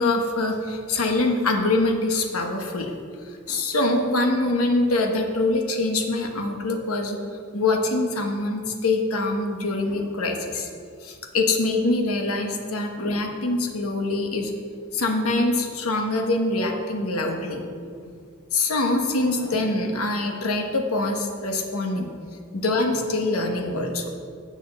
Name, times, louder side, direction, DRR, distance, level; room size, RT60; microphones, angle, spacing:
voice 1, 0.0-2.9 3.5-7.2 7.5-10.7 11.0-14.5 14.9-17.6 18.5-22.1 22.5-24.1, left 2 dB, 85° left, 4 dB, 1.2 m, -24 dB
7.7 x 6.5 x 6.7 m, 2.3 s
head